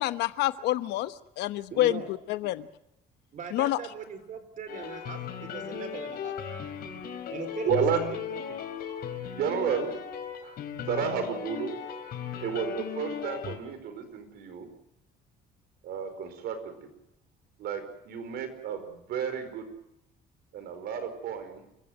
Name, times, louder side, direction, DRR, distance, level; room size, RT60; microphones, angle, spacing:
voice 1, 0.0-2.7 3.5-3.8, left 15 dB, 85° left, 12 dB, 1.1 m, -28 dB
voice 2, 1.7-2.1 3.3-6.4 7.3-8.6, right 6 dB, 50° right, 10 dB, 4.1 m, -40 dB
sound 1, 4.7-13.6, left 8 dB, 65° left, 4.2 m, -37 dB
voice 3, 7.6-8.0 9.3-9.9 10.4-10.6 10.9-11.7 12.4-14.7 15.8-16.9 17.6-19.7 20.5-21.6, right 7 dB, 70° right, 9 dB, 4.8 m, -31 dB
29.0 x 15.5 x 7.8 m, 0.83 s
cardioid pair, 110°, 17 cm